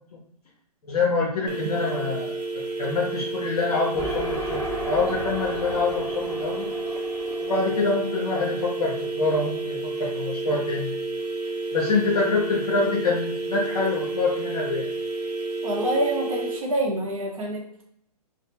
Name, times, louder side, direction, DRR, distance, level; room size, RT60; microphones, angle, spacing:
voice 1, 0.8-6.7 7.4-10.9 11.7-14.9, left 4 dB, 70° left, -4 dB, 0.8 m, -26 dB
sound 1, 1.5-16.6, right 3 dB, 90° right, 0.5 m, -31 dB
sound 2, 4.0-9.6, equal, 5° left, 0.4 m, -35 dB
voice 2, 15.6-17.8, right 1 dB, 55° right, 0 dB, 0.8 m, -26 dB
2.6 x 2.1 x 2.7 m, 0.73 s
hypercardioid pair, 145°, 20 cm